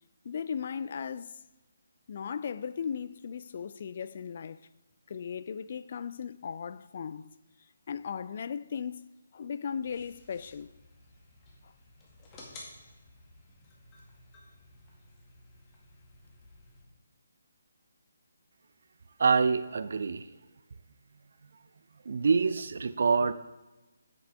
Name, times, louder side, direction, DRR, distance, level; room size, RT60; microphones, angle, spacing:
voice 1, 0.2-1.4 2.1-4.6 5.1-7.3 7.9-9.1 9.3-10.7 11.6-11.7, left 7 dB, 40° left, 0.3 m, -37 dB
sound 1, 9.8-16.8, left 2 dB, 20° left, 1.9 m, -54 dB
voice 2, 19.2-20.3 22.0-23.3, right 5 dB, 50° right, 0.5 m, -26 dB
11.0 x 8.3 x 3.5 m
figure-of-eight pair, 145°, 0 cm